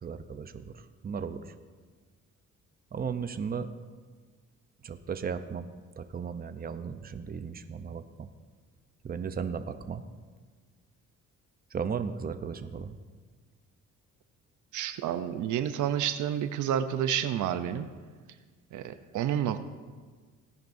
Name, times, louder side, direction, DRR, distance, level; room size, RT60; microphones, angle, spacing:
voice 1, 0.0-1.5 2.9-3.7 4.8-5.7 6.0-8.3 9.0-10.0 11.7-13.0, right 6 dB, 30° right, 9 dB, 0.7 m, -35 dB
voice 2, 14.7-17.9 18.7-19.6, right 10 dB, 75° right, 10 dB, 0.7 m, -29 dB
17.5 x 10.5 x 2.7 m, 1.5 s
cardioid pair, 90°, 30 cm